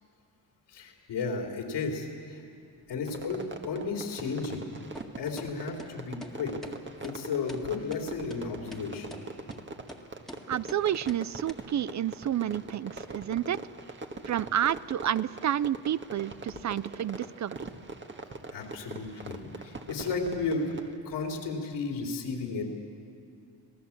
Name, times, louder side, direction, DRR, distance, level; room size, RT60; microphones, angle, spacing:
voice 1, 0.7-2.4 2.9-4.7 5.2-6.5 7.0-9.2 18.5-20.8 21.0-22.6, left 4 dB, 90° left, 1 dB, 3.7 m, -33 dB
Fireworks, 3.1-21.0, right 3 dB, 30° right, 1.6 m, -43 dB
sound 1, 4.9-5.1 5.4-5.5 5.8-5.9 6.2-6.3 6.6-6.7 7.0-7.2 7.5-7.6 7.9-8.0 8.3-8.4 8.7-8.8 9.1-9.2 9.5-9.6 9.9-10.0 10.3-10.4 10.7-10.8 11.1-11.2 11.5-11.6, equal, ahead, 1.9 m, -44 dB
voice 2, 10.5-13.6 14.3-17.7, right 10 dB, 45° right, 18 dB, 0.5 m, -30 dB
27.0 x 18.5 x 7.3 m, 2.5 s
cardioid pair, 85°, 40 cm